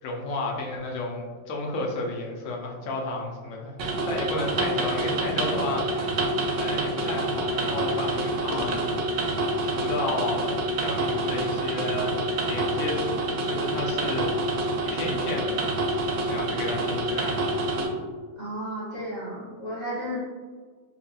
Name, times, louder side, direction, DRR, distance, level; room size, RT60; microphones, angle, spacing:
voice 1, 0.0-3.8 4.1-6.2 6.5-9.0 9.6-15.8 16.3-17.4, left 2 dB, 75° left, -1 dB, 1.0 m, -32 dB
sound 1, 3.8-17.9, right 2 dB, 70° right, 0.9 m, -27 dB
voice 2, 18.4-20.2, equal, 45° left, -9 dB, 0.6 m, -33 dB
2.9 x 2.7 x 2.3 m, 1.5 s
omnidirectional pair, 1.4 m